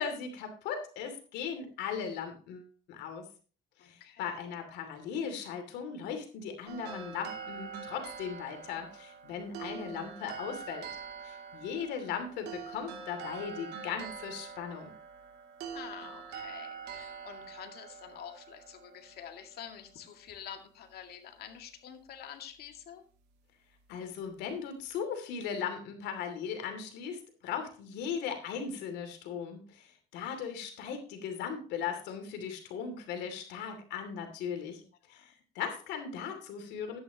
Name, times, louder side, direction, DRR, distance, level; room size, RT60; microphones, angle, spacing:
voice 1, 0.0-3.3 3.8-10.9 11.2-14.9 23.9-34.8 35.1-37.0, left 7 dB, 85° left, 6 dB, 2.8 m, -38 dB
voice 2, 3.8-4.4 15.7-23.0 34.7-35.3, left 9 dB, 70° left, 6 dB, 2.1 m, -48 dB
sound 1, 6.7-19.9, right 6 dB, 80° right, 2.6 m, -45 dB
12.5 x 10.0 x 3.0 m, 0.37 s
cardioid pair, 110°, 17 cm